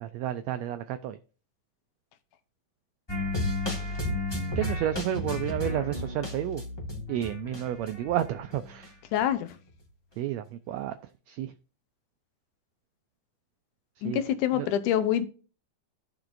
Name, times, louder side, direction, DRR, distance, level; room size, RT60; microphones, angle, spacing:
voice 1, 0.0-1.2 4.6-6.6 7.1-8.9 10.2-10.9 11.3-11.5 14.0-14.2 14.5-14.7, right 12 dB, 85° right, 10 dB, 1.5 m, -31 dB
sound 1, 3.1-8.9 9.1-9.2, left 2 dB, 30° left, 0.4 m, -33 dB
voice 2, 9.1-9.5 14.0-15.3, left 10 dB, 80° left, 11 dB, 2.2 m, -26 dB
16.5 x 6.0 x 2.5 m, 0.37 s
omnidirectional pair, 3.6 m